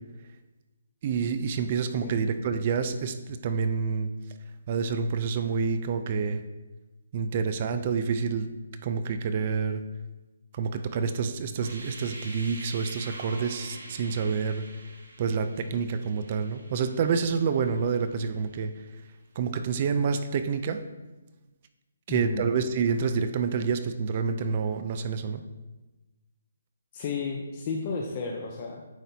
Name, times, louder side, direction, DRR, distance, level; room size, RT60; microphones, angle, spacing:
voice 1, 1.0-4.1 4.7-6.4 7.1-8.5 8.8-9.8 10.5-14.6 15.2-18.7 19.4-20.8 22.1-25.4, right 5 dB, 35° right, 9 dB, 0.5 m, -28 dB
sound 1, 11.5-18.4, right 1 dB, 85° right, 2.3 m, -45 dB
voice 2, 22.1-22.5 26.9-28.8, left 4 dB, 30° left, 1 dB, 0.7 m, -32 dB
9.0 x 5.9 x 2.8 m, 1.1 s
hypercardioid pair, 160°, 0 cm